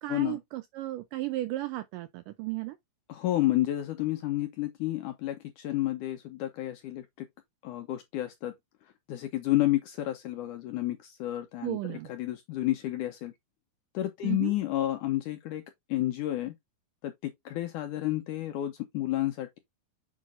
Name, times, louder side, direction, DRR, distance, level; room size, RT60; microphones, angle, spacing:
voice 1, 0.0-2.8 11.6-12.1 14.2-14.5, right 17 dB, 85° right, 1.9 m, -34 dB
voice 2, 3.1-7.3 7.6-8.5 9.1-13.3 13.9-15.6 15.9-16.5 17.0-19.6, left 15 dB, 75° left, 1.9 m, -30 dB
7.4 x 5.6 x 2.5 m
omnidirectional pair, 4.3 m